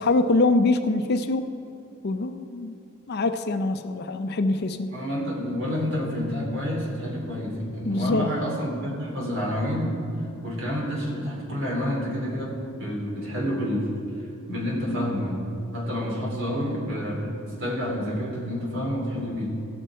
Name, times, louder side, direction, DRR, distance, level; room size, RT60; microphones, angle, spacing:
voice 1, 0.0-1.4 2.0-2.7 3.1-4.9 7.8-8.3, left 2 dB, 45° left, 8 dB, 0.5 m, -24 dB
voice 2, 4.9-10.0 10.2-13.9 14.5-15.4 15.7-19.6, equal, 55° right, -3 dB, 2.9 m, -29 dB
17.0 x 6.2 x 4.5 m, 2.5 s
head